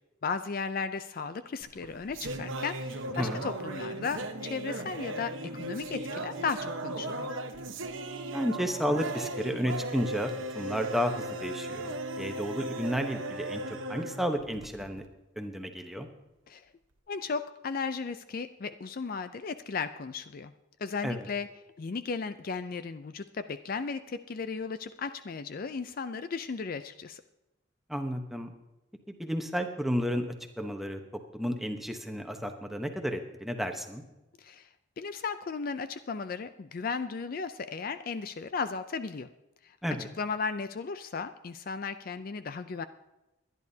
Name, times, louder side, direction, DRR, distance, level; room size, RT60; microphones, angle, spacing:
voice 1, 0.2-7.3 16.5-16.7 17.1-20.5 20.8-21.5 21.8-27.2 34.4-34.7 35.0-39.3 39.6-42.9, left 5 dB, 45° left, 11 dB, 0.4 m, -35 dB
sound 1, 1.6-15.1, right 2 dB, 75° right, 1.1 m, -37 dB
voice 2, 8.3-15.0 15.4-16.1 21.0-21.2 27.9-28.5 29.2-30.3 30.6-31.0 31.3-34.0 39.8-40.1, equal, ahead, 4 dB, 1.0 m, -32 dB
22.5 x 10.5 x 2.8 m, 0.98 s
head